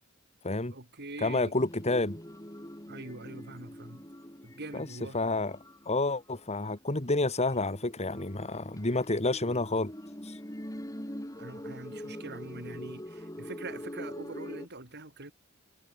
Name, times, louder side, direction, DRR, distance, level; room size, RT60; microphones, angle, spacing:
voice 1, 0.7-1.5 2.9-4.0 4.4-5.2 11.3-15.3, right 2 dB, 55° right, 6.9 m, -43 dB
voice 2, 1.2-2.2 4.7-4.9 5.1-5.6 5.9-9.9 10.2-10.3, left 2 dB, 30° left, 2.4 m, -29 dB
sound 1, 1.5-6.7 7.5-14.7, equal, 15° left, 6.7 m, -44 dB
head